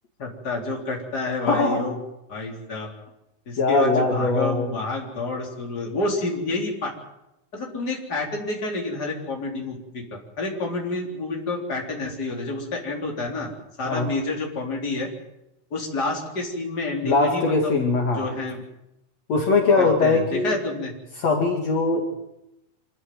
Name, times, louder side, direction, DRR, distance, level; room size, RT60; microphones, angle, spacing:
voice 1, 0.2-2.0 2.3-2.9 3.5-6.9 7.5-10.0 10.4-13.5 13.8-15.1 15.7-17.7 18.1-18.6 19.8-20.9, left 2 dB, 30° left, 0 dB, 4.3 m, -29 dB
voice 2, 1.4-1.8 3.6-4.7 13.9-14.1 17.0-18.3 19.3-20.6 21.2-22.2, left 3 dB, 60° left, 1 dB, 3.5 m, -21 dB
26.0 x 14.0 x 9.3 m, 0.88 s
omnidirectional pair, 3.5 m